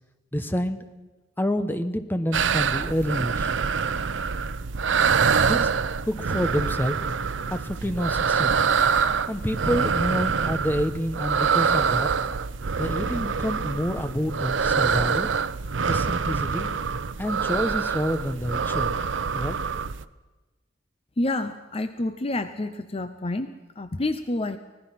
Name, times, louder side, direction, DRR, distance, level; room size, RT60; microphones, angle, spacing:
voice 1, 0.3-0.8 1.4-3.5 5.4-5.7 6.1-7.0 7.5-8.6 9.3-12.1 12.8-15.3 15.9-16.7 17.2-19.0 19.3-19.6, equal, 10° left, 10 dB, 1.0 m, -28 dB
sound 1, 2.3-20.0, right 6 dB, 85° right, 0.7 m, -25 dB
voice 2, 21.2-24.6, left 2 dB, 30° left, 10 dB, 0.7 m, -28 dB
25.0 x 18.5 x 5.9 m, 1.2 s
head